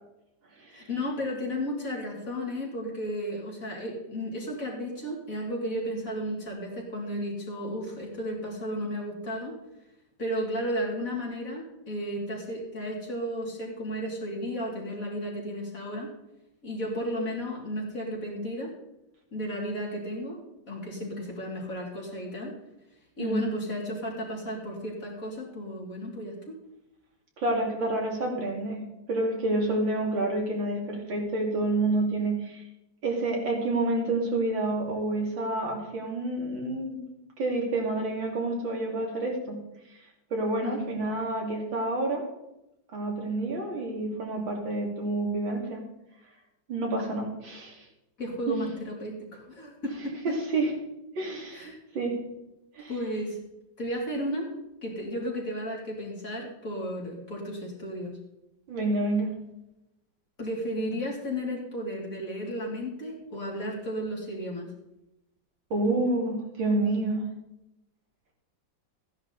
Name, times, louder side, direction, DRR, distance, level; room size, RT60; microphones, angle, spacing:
voice 1, 0.7-9.5 10.2-16.1 16.6-18.7 19.3-22.5 23.2-26.4 40.6-40.9 47.0-47.1 48.2-50.4 51.5-51.8 52.9-53.4 53.8-54.5 54.8-58.2 60.4-64.7, equal, 45° left, -2 dB, 3.5 m, -33 dB
voice 2, 27.4-28.8 29.1-32.6 33.0-37.0 37.4-39.6 40.3-42.2 42.9-45.8 46.7-47.9 48.5-48.6 50.3-50.7 51.2-52.2 52.8-52.9 58.7-59.3 65.7-67.3, right 2 dB, 85° right, 0 dB, 3.4 m, -28 dB
14.5 x 10.5 x 4.1 m, 0.90 s
omnidirectional pair, 2.0 m